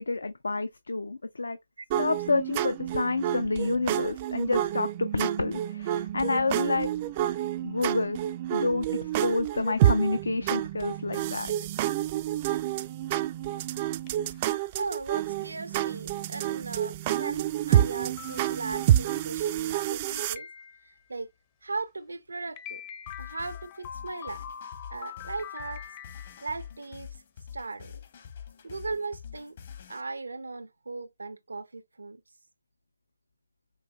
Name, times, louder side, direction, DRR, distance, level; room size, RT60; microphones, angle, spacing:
voice 1, 0.0-1.6 2.0-6.9 7.6-8.2 8.5-11.5, left 3 dB, 80° left, 0.5 m, -29 dB
sound 1, 1.9-20.4, right 12 dB, 30° right, 0.3 m, -28 dB
sound 2, 13.9-14.5 15.1-15.3 15.9-16.0 16.4-16.5 17.2-17.3 17.8-17.9 18.2-19.0 20.2-21.1 22.6-26.8, left 9 dB, 25° left, 0.6 m, -44 dB
voice 2, 14.8-20.5 20.8-21.3 21.6-22.8 23.2-24.5 24.9-25.9 26.4-27.2 27.5-28.0 28.6-29.6 29.9-32.2, right 3 dB, 80° right, 0.6 m, -38 dB
sound 3, 23.1-30.0, left 8 dB, 45° left, 1.0 m, -45 dB
5.5 x 2.9 x 2.3 m
figure-of-eight pair, 150°, 0 cm